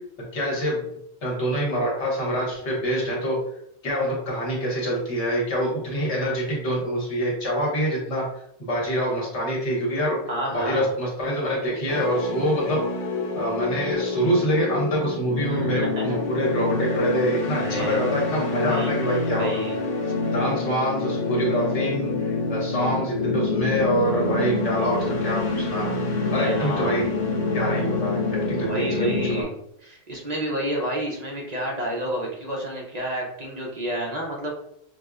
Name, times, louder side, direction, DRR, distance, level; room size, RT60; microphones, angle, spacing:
voice 1, 0.3-0.8 1.2-3.4 3.8-8.2 8.6-10.2 10.5-12.8 13.3-19.6 20.2-25.9 26.3-27.1 27.5-29.4, equal, 85° left, -3 dB, 1.5 m, -25 dB
voice 2, 10.3-10.9 15.5-16.2 17.6-18.2 18.6-19.8 20.1-20.2 26.3-27.0 28.6-34.5, right 1 dB, 45° right, -2 dB, 0.7 m, -30 dB
sound 1, 11.9-29.4, left 3 dB, 55° left, 0.6 m, -27 dB
4.9 x 2.1 x 2.4 m, 0.74 s
omnidirectional pair, 1.1 m